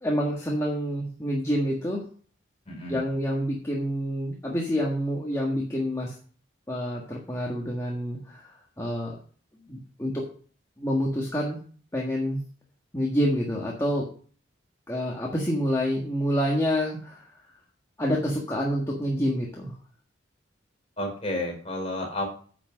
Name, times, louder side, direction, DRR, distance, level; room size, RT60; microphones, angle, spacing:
voice 1, 0.0-2.0 2.9-6.1 6.7-8.5 8.8-9.2 9.7-10.2 10.8-11.6 11.9-12.4 12.9-14.0 14.9-17.2 18.0-19.7, equal, 15° left, -3 dB, 1.6 m, -27 dB
voice 2, 2.7-3.0 21.0-22.3, left 1 dB, 30° left, 1 dB, 3.6 m, -31 dB
9.8 x 6.2 x 6.1 m, 0.43 s
head